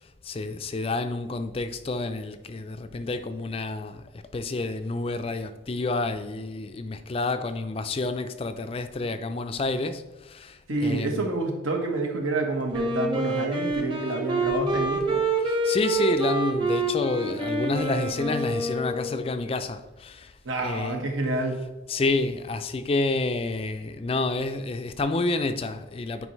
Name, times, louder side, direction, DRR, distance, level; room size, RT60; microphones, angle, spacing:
voice 1, 0.2-4.1 4.3-11.3 15.4-20.3 20.6-21.0 21.9-26.3, left 3 dB, 30° left, 0.3 m, -29 dB
voice 2, 10.7-15.3 20.4-21.6, right 2 dB, 80° right, 1.3 m, -28 dB
Wind instrument woodwind instrument, 12.7-19.4, right 2 dB, 25° right, 0.9 m, -27 dB
9.5 x 4.6 x 3.1 m
head